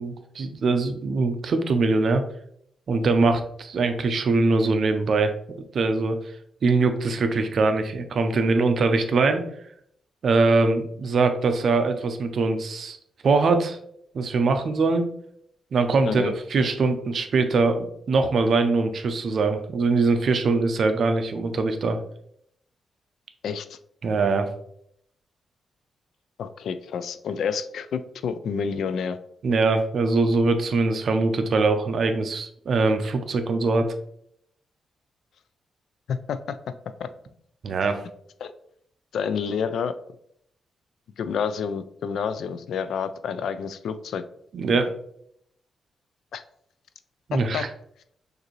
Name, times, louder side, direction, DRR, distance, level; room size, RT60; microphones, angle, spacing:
voice 1, 0.0-2.2 2.9-5.3 5.7-6.2 6.6-9.4 10.2-13.0 13.2-13.8 14.1-15.1 15.7-22.0 24.0-24.5 29.4-33.9 37.6-38.0 44.5-44.9 47.3-47.7, right 3 dB, 50° right, 7 dB, 0.5 m, -22 dB
voice 2, 23.4-23.8 26.4-29.2 36.1-36.6 37.0-37.1 38.4-38.5 39.1-40.0 41.2-44.2 46.3-46.4 47.3-47.7, left 6 dB, 75° left, 12 dB, 0.3 m, -29 dB
6.4 x 2.6 x 3.1 m, 0.70 s
wide cardioid pair, 150°, 0 cm